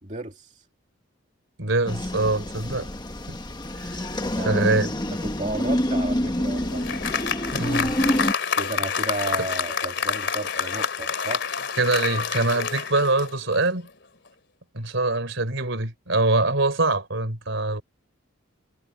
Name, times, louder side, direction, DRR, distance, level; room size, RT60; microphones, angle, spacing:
voice 1, 0.0-0.6 4.2-4.8 5.2-6.9 8.5-11.5, right 2 dB, 35° right, 2.5 m, -33 dB
voice 2, 1.6-2.9 3.3-3.4 3.8-4.1 4.4-4.9 7.5-8.0 11.8-13.9 14.7-17.8, right 2 dB, 65° right, 3.6 m, -24 dB
sound 1, 1.9-8.3, left 1 dB, 20° left, 1.3 m, -27 dB
Applause, 6.2-13.8, left 6 dB, 55° left, 3.4 m, -28 dB
head